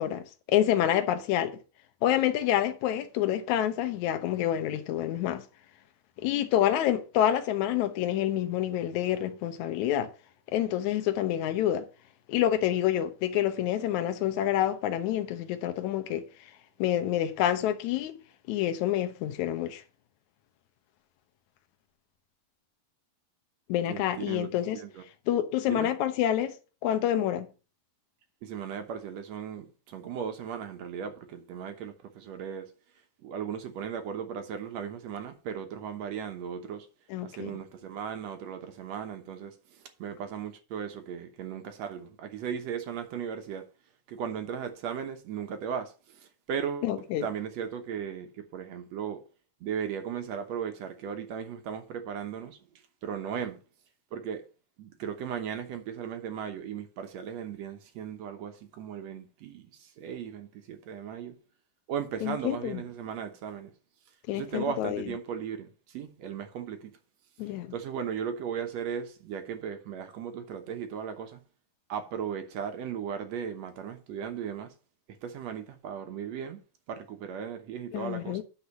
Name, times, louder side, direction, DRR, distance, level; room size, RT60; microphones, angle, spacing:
voice 1, 0.0-1.6 2.0-5.4 6.2-10.1 10.5-11.8 12.3-16.3 16.8-18.1 18.5-19.8 23.7-24.8 25.3-26.5 26.8-27.5 37.1-37.6 46.8-47.3 62.2-62.8 64.3-65.0 67.4-67.7 77.9-78.4, left 11 dB, 70° left, 2.1 m, -27 dB
voice 2, 23.9-25.0 25.7-25.9 28.4-32.7 33.2-36.9 37.2-43.7 44.1-46.9 47.2-49.2 49.6-52.6 53.0-53.6 54.1-54.4 54.8-61.4 61.9-63.7 64.3-66.9 67.7-71.4 71.9-74.7 75.2-76.6 76.9-78.4, right 7 dB, 65° right, 1.9 m, -37 dB
9.9 x 3.9 x 6.9 m
omnidirectional pair, 3.9 m